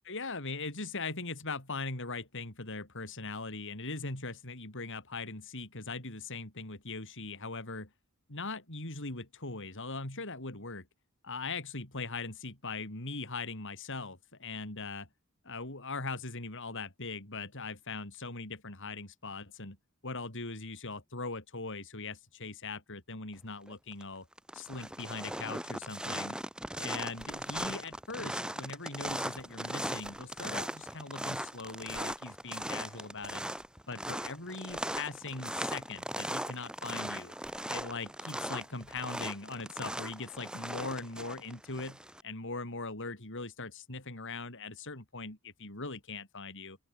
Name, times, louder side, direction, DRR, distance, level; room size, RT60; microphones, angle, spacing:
voice 1, 0.1-7.9 8.3-10.8 11.2-15.1 15.4-19.8 20.0-24.3 24.5-26.4 26.7-33.4 33.9-37.3 37.7-46.8, left 3 dB, 60° left, 5.7 m, -40 dB
sound 1, 23.7-24.0 24.3-42.2, right 1 dB, 5° right, 5.0 m, -38 dB
open air
head